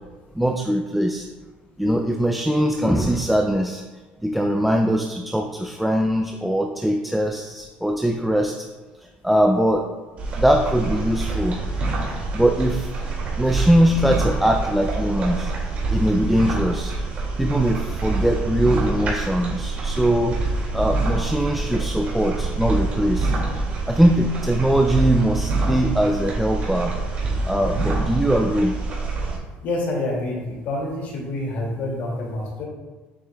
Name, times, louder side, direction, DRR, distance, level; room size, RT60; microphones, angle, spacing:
voice 1, 0.3-1.3 1.8-3.8 4.2-8.7 9.0-9.9 10.4-11.6 12.0-12.9 13.4-15.5 15.9-17.0 17.4-20.4 20.7-23.3 23.9-26.9 27.4-28.7, right 1 dB, ahead, 3 dB, 0.4 m, -21 dB
sound 1, 10.2-29.4, right 3 dB, 40° right, 2.2 m, -26 dB
voice 2, 29.6-32.6, left 2 dB, 55° left, -2 dB, 2.3 m, -27 dB
8.5 x 7.5 x 2.3 m, 1.2 s
cardioid pair, 165°, 4 cm